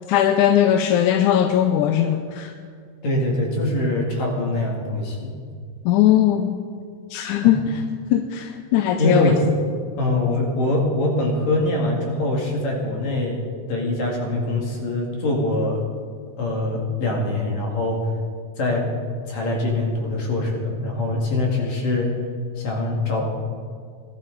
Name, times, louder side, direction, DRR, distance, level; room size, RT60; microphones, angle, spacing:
voice 1, 0.1-2.5 5.9-6.6 7.1-7.6 8.1-9.4, left 10 dB, 85° left, 7 dB, 2.0 m, -19 dB
voice 2, 3.0-5.3 9.0-9.4 10.0-13.4 13.7-15.8 16.4-18.0 18.6-18.8 19.3-22.1 22.6-23.2, left 2 dB, 65° left, -1 dB, 3.4 m, -23 dB
19.0 x 12.5 x 4.0 m, 2.1 s
omnidirectional pair, 3.6 m